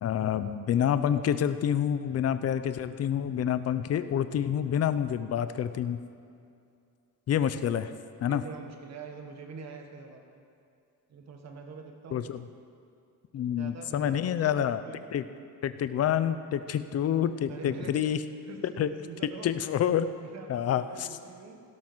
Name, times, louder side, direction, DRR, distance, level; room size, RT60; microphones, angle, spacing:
voice 1, 0.0-6.0 7.3-7.9 8.2-8.4 12.1-12.5 13.3-14.8 15.1-15.2 15.6-18.2 18.6-18.9 19.4-20.1 20.5-21.1, left 9 dB, 50° left, 12 dB, 0.7 m, -28 dB
voice 2, 8.3-10.4 11.1-12.3 13.6-15.1 17.5-18.1 18.5-19.5 20.2-21.6, right 5 dB, 50° right, 4 dB, 1.7 m, -45 dB
16.5 x 12.5 x 6.2 m, 2.5 s
cardioid pair, 165°, 33 cm